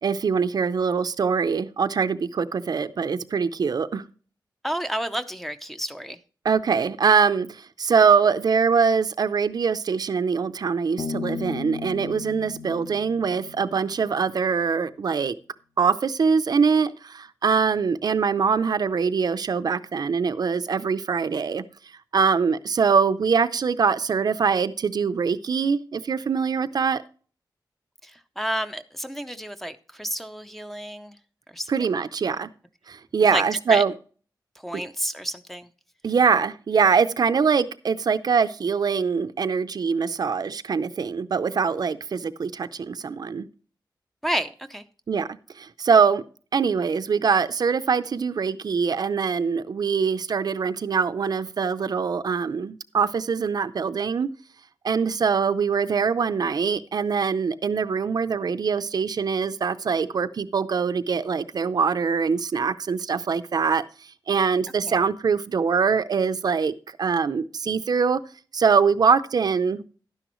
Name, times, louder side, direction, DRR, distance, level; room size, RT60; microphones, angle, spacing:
voice 1, 0.0-4.0 6.4-15.3 15.8-21.6 22.1-27.0 31.7-32.5 32.9-33.9 36.0-43.5 45.1-45.3 45.6-46.2 46.5-54.3 54.8-63.8 64.3-66.7 67.0-68.2 68.5-69.8, right 5 dB, 60° right, 0.5 m, -23 dB
voice 2, 4.6-6.2 28.0-31.2 31.5-31.9 33.3-33.8 34.6-35.7 44.2-44.8 64.8-64.9, equal, 5° left, 0.6 m, -30 dB
Bass guitar, 11.0-14.5, left 5 dB, 85° left, 0.9 m, -35 dB
12.0 x 10.0 x 3.0 m
wide cardioid pair, 175°, 8 cm